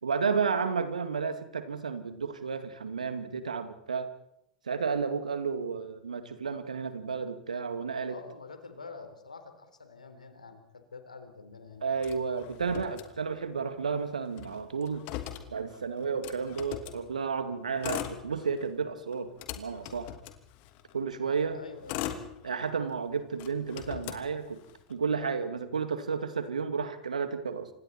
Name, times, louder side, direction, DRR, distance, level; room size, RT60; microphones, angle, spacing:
voice 1, 0.0-4.1 4.7-8.2 11.8-15.0 15.5-20.1 20.9-21.6 22.4-24.6 24.9-27.7, right 5 dB, 80° right, 9 dB, 2.3 m, -32 dB
voice 2, 8.1-11.8 21.5-22.1, left 4 dB, 85° left, 7 dB, 4.0 m, -47 dB
Motor vehicle (road), 12.0-13.6 13.9-14.0 14.2-17.0 17.7-18.7 19.1-20.9 21.5-22.9 23.3-24.9, left 12 dB, 45° left, 2.8 m, -40 dB
29.5 x 26.5 x 4.4 m, 0.79 s
figure-of-eight pair, 90°, 4 cm